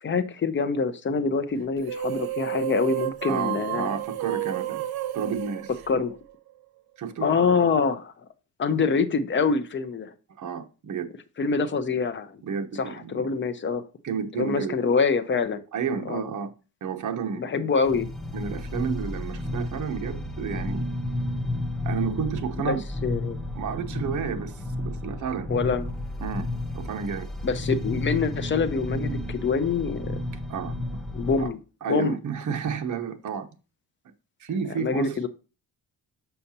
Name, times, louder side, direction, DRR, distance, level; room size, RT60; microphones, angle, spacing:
voice 1, 0.0-3.9 5.9-6.2 7.2-8.1 8.6-10.1 11.4-12.4 12.7-13.8 14.4-15.6 16.1-16.2 17.3-18.1 22.6-22.8 23.0-23.4 25.5-25.8 27.4-30.2 31.1-31.6 31.9-32.2 34.8-35.3, left 5 dB, 30° left, 0.6 m, -25 dB
sound 1, 1.8-6.5, right 14 dB, 85° right, 0.8 m, -31 dB
voice 2, 3.2-4.8 5.1-5.7 7.0-7.3 10.4-11.1 12.4-13.3 14.0-14.7 15.7-16.5 16.8-17.6 18.3-20.9 21.8-22.8 23.5-25.5 26.2-26.5 26.7-27.3 30.5-30.7 31.4-31.5 31.8-33.5 34.4-35.2, right 6 dB, 55° right, 0.9 m, -31 dB
sound 2, 17.8-31.5, left 1 dB, ahead, 0.8 m, -32 dB
6.7 x 5.6 x 2.8 m
cardioid pair, 135°, 36 cm